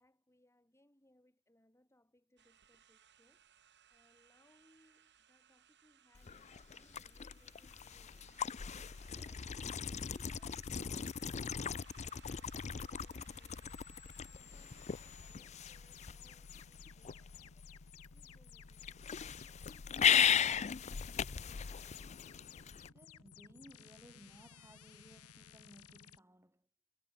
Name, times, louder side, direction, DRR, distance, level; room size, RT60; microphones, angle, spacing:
voice 1, 0.0-8.6 9.1-13.9 14.3-19.9, left 1 dB, 10° left, 3.8 m, -72 dB
sound 1, 2.4-15.4, right 8 dB, 50° right, 7.7 m, -66 dB
sound 2, 6.1-22.9, left 8 dB, 30° left, 0.5 m, -37 dB
sound 3, 13.6-26.2, left 7 dB, 75° left, 2.0 m, -57 dB
voice 2, 22.9-26.7, equal, 10° right, 5.5 m, -60 dB
head